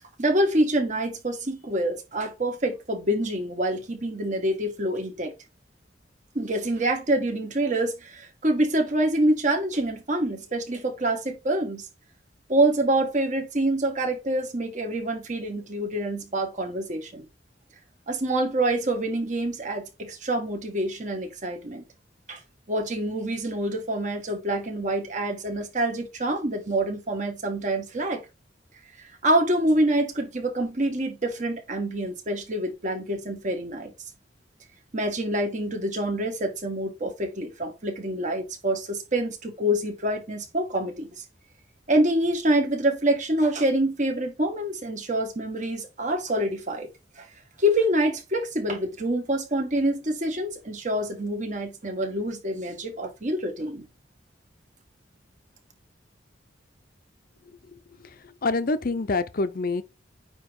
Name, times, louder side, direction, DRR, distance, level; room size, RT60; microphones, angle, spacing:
voice 1, 0.2-5.3 6.3-11.9 12.5-17.2 18.1-21.8 22.3-22.4 22.7-28.2 29.2-33.9 34.9-41.2 41.9-46.9 47.2-47.3 47.6-53.8, right 1 dB, 45° right, 1.5 m, -26 dB
voice 2, 58.4-59.8, left 3 dB, 55° left, 0.6 m, -25 dB
8.9 x 3.0 x 3.6 m
head